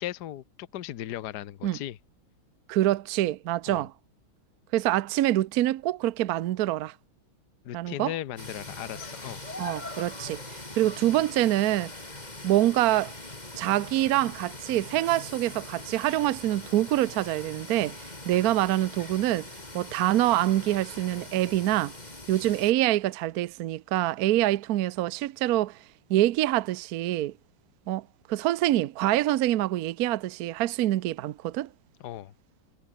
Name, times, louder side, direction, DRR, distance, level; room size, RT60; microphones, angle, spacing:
voice 1, 0.0-2.0 3.7-3.8 7.6-9.4 32.0-32.3, left 12 dB, 60° left, 1.4 m, -37 dB
voice 2, 2.7-3.9 4.7-6.9 7.7-8.1 9.6-11.9 12.4-13.1 13.6-18.0 18.2-19.5 19.7-21.9 22.3-25.8 26.1-27.3 27.9-31.7, right 14 dB, 65° right, 0.9 m, -25 dB
sound 1, 8.4-22.7, left 2 dB, 20° left, 3.5 m, -42 dB
omnidirectional pair, 2.2 m